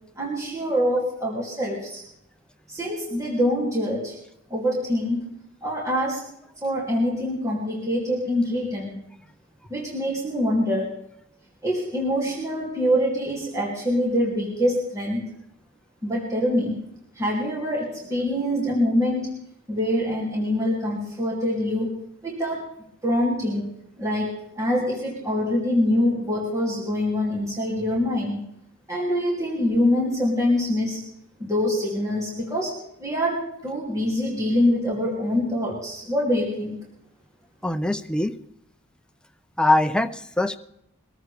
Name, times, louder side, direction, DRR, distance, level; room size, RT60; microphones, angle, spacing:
voice 1, 0.2-2.0 2.7-4.2 4.5-5.3 5.6-6.2 6.6-9.0 9.7-10.9 11.6-15.2 16.0-16.8 17.2-19.3 19.7-22.7 23.0-23.7 24.0-28.4 28.9-31.0 31.4-36.7, left 1 dB, 15° right, -5 dB, 2.8 m, -25 dB
voice 2, 37.6-38.3 39.6-40.6, left 2 dB, 5° left, 8 dB, 0.5 m, -22 dB
23.0 x 14.0 x 3.4 m, 0.80 s
head